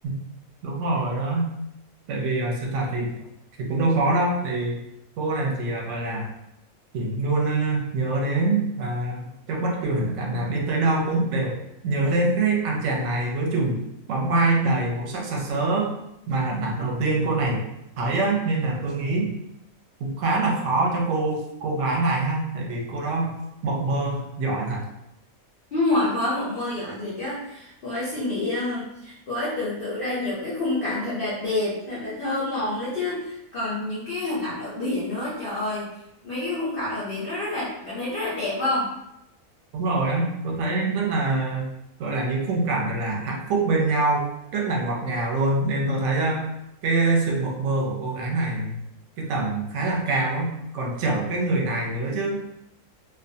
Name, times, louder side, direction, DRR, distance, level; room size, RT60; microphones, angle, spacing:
voice 1, 0.6-1.5 2.1-3.1 3.6-4.8 5.2-6.3 6.9-11.5 11.8-13.8 14.1-15.9 16.3-17.6 18.0-19.3 20.0-23.3 23.6-24.8 39.7-41.7 42.0-44.3 44.5-46.4 46.8-48.8 49.2-52.4, right 2 dB, 65° right, -1 dB, 0.9 m, -24 dB
voice 2, 25.7-35.9 36.2-38.9, left 2 dB, 55° left, -8 dB, 0.6 m, -28 dB
2.4 x 2.2 x 2.6 m, 0.83 s
omnidirectional pair, 1.5 m